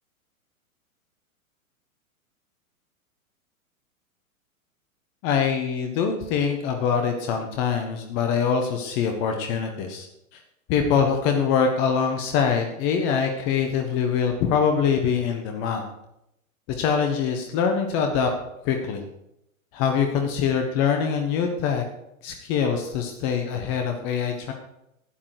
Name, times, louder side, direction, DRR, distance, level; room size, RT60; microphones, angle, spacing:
voice 1, 5.2-10.1 10.3-10.4 10.7-15.8 16.8-18.3 18.6-19.0 19.7-21.8 22.2-24.5, left 6 dB, 30° left, 4 dB, 1.3 m, -24 dB
12.5 x 10.0 x 4.8 m, 0.83 s
figure-of-eight pair, 105°, 42 cm